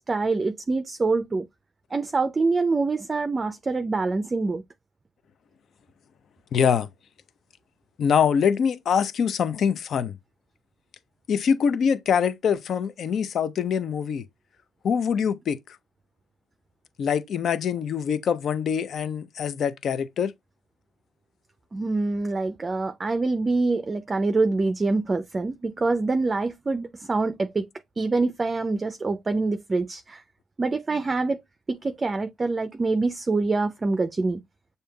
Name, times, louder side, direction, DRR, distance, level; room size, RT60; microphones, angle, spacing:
voice 1, 0.0-1.5 1.9-4.6 21.7-27.7 28.0-30.2 30.6-31.4 31.7-34.4, right 3 dB, 30° right, 0.4 m, -25 dB
voice 2, 6.5-6.9 8.0-10.2 11.3-14.3 14.8-15.6 17.0-20.3, left 7 dB, 60° left, 0.5 m, -24 dB
6.7 x 2.7 x 2.2 m
cardioid pair, 90°, 0 cm